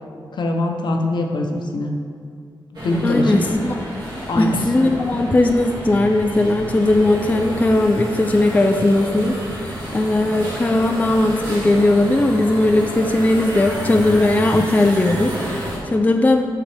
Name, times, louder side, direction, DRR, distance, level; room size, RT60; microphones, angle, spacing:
voice 1, 0.4-1.9 2.8-3.4 4.3-4.6, left 2 dB, 65° left, 2 dB, 0.8 m, -22 dB
sound 1, 2.7-15.8, equal, 60° right, 1.9 m, -30 dB
voice 2, 3.0-3.8 4.4-16.4, left 2 dB, 20° left, 5 dB, 0.4 m, -18 dB
7.8 x 5.7 x 3.4 m, 2.2 s
cardioid pair, 80°, 8 cm